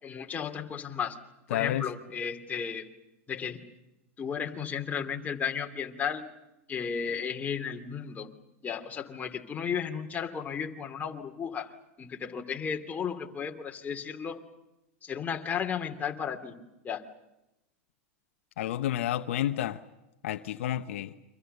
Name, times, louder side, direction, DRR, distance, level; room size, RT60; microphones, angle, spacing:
voice 1, 0.0-1.2 1.5-2.9 3.3-3.6 4.2-6.3 6.7-8.3 8.6-11.7 12.0-14.4 15.0-16.6 16.8-17.0, left 7 dB, 20° left, 3 dB, 2.7 m, -34 dB
voice 2, 1.5-1.9 18.6-19.8 20.2-21.1, left 12 dB, 70° left, 9 dB, 1.0 m, -30 dB
29.5 x 25.0 x 6.8 m, 0.95 s
hypercardioid pair, 110°, 7 cm